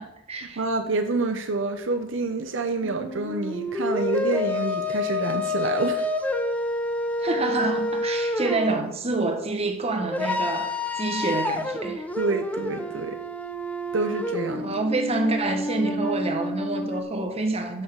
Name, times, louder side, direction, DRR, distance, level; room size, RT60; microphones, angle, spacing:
voice 1, 0.0-0.6 7.2-12.0 14.6-17.8, right 2 dB, 30° right, 1.1 m, -27 dB
voice 2, 0.6-6.1 12.2-13.2 13.9-14.8, right 3 dB, 70° right, 0.7 m, -27 dB
sound 1, 2.8-8.9 10.0-17.0, left 2 dB, 10° left, 0.7 m, -29 dB
6.5 x 6.4 x 6.1 m
head